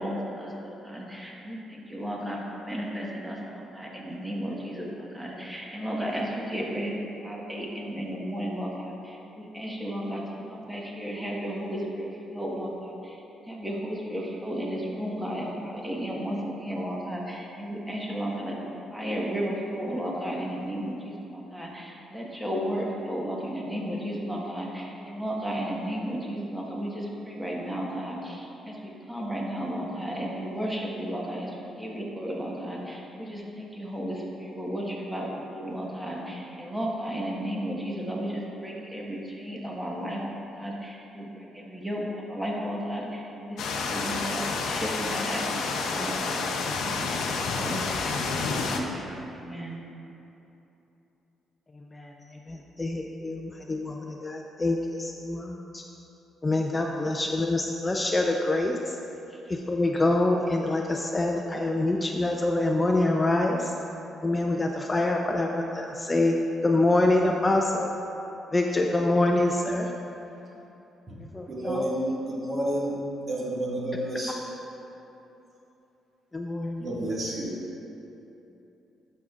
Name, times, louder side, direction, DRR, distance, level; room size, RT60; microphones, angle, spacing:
voice 1, 0.0-10.2 10.5-13.2 13.4-49.8 57.1-57.4 59.3-59.6, equal, 5° right, -3 dB, 1.3 m, -34 dB
sound 1, 43.6-48.8, left 4 dB, 80° left, 0.7 m, -29 dB
voice 2, 51.9-55.8 56.4-59.0 59.7-63.7 64.2-66.4 66.6-67.9 68.5-69.9 71.3-71.8 76.3-76.9, left 2 dB, 20° left, 1 dB, 0.5 m, -26 dB
voice 3, 71.5-74.5 76.8-77.6, right 1 dB, 40° right, -5 dB, 1.8 m, -30 dB
12.0 x 6.4 x 2.4 m, 3.0 s
cardioid pair, 90°, 0 cm